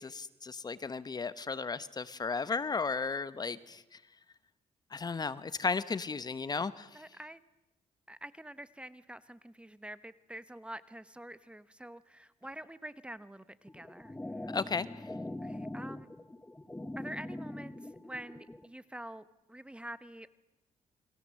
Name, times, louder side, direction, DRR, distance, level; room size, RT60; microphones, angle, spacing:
voice 1, 0.0-4.0 4.9-7.0 14.4-15.0, left 4 dB, 35° left, 15 dB, 1.1 m, -35 dB
voice 2, 6.9-7.4 8.1-14.5 15.4-16.1 17.0-20.3, right 1 dB, 10° right, 15 dB, 1.1 m, -47 dB
sound 1, 13.7-18.7, left 1 dB, 10° left, 1.3 m, -42 dB
30.0 x 22.5 x 7.7 m, 0.91 s
cardioid pair, 100°, 13 cm